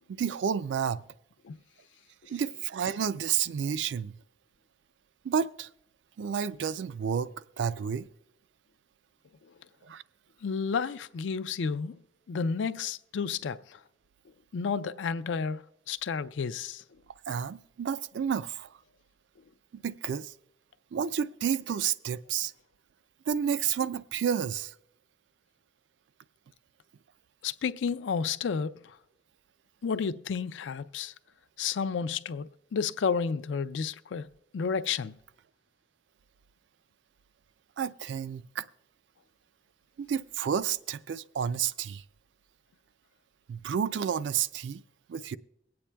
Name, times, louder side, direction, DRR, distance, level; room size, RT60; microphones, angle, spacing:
voice 1, 0.1-1.0 2.3-4.2 5.2-5.7 6.2-7.3 7.6-8.1 9.9-10.0 17.3-18.7 19.8-20.3 20.9-22.5 23.3-24.7 37.8-38.7 40.0-42.0 43.5-44.8 45.1-45.4, right 7 dB, 75° right, 0.3 m, -30 dB
voice 2, 10.4-12.0 12.3-13.8 14.5-15.6 15.9-16.8 27.4-29.0 29.8-31.1 31.6-35.1, left 5 dB, 85° left, 0.4 m, -31 dB
23.0 x 8.6 x 2.2 m
head